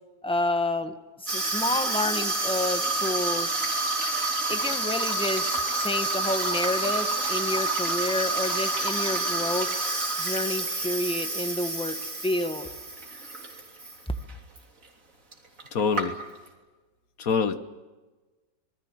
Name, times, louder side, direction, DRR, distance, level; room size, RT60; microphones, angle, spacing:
voice 1, 0.2-3.5 4.5-9.7 10.2-12.7, left 1 dB, 5° left, 8 dB, 1.2 m, -29 dB
Water tap faucet / Sink (filling or washing), 1.3-14.0 14.3-14.6 15.3-15.4 15.6-16.5, right 2 dB, 45° right, 3.7 m, -28 dB
voice 2, 15.7-16.2 17.2-17.6, left 5 dB, 55° left, 11 dB, 1.5 m, -25 dB
26.5 x 20.5 x 7.6 m, 1.2 s
omnidirectional pair, 1.9 m